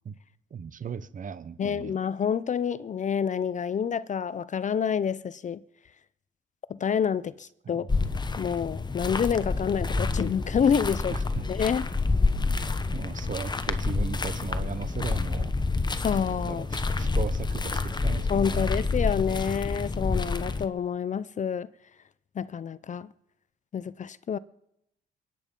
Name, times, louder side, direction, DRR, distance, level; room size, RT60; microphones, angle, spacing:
voice 1, 0.5-2.0 7.7-8.0 11.1-11.5 12.9-15.5 16.5-18.7, right 6 dB, 40° right, 0.9 m, -37 dB
voice 2, 1.6-5.6 6.7-7.9 8.4-11.1 11.5-11.9 16.0-16.6 18.3-21.7 22.4-23.1 23.7-24.4, left 7 dB, 40° left, 0.5 m, -28 dB
sound 1, 7.9-20.7, left 3 dB, 20° left, 1.0 m, -28 dB
22.5 x 9.3 x 5.3 m
cardioid pair, 90°, 20 cm